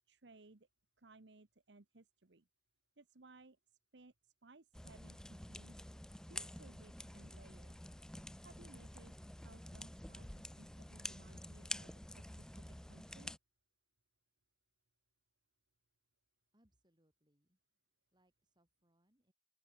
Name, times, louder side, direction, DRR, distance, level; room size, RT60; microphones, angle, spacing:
voice 1, 0.1-0.7 1.0-2.5 3.0-3.6 3.9-5.8 6.3-7.8 8.4-13.4, right 3 dB, 80° right, 1.2 m, -62 dB
sound 1, 4.7-13.4, left 1 dB, 5° left, 0.4 m, -49 dB
voice 2, 16.5-17.6 18.1-19.3, right 1 dB, 25° right, 8.0 m, -77 dB
open air
head